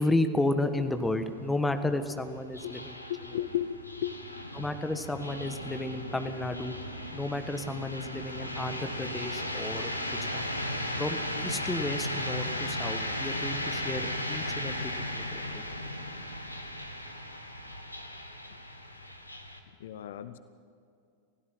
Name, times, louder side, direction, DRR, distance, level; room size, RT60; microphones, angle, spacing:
voice 1, 0.0-3.0 4.5-6.7 7.1-10.5 11.0-15.6, left 2 dB, 10° left, 9 dB, 1.4 m, -32 dB
sound 1, 0.6-19.6, left 1 dB, 85° left, 1.8 m, -36 dB
voice 2, 3.1-4.1 19.8-20.4, left 11 dB, 60° left, 14 dB, 0.7 m, -34 dB
28.5 x 16.0 x 5.8 m, 2.4 s
figure-of-eight pair, 90°, 0 cm